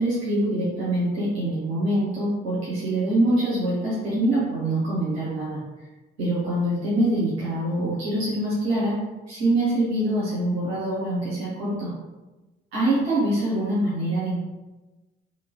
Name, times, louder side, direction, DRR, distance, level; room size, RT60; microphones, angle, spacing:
voice 1, 0.0-5.6 6.2-8.9 9.3-11.9 12.7-14.4, right 1 dB, 85° right, -9 dB, 0.9 m, -24 dB
2.9 x 2.8 x 2.9 m, 1.1 s
figure-of-eight pair, 45°, 30 cm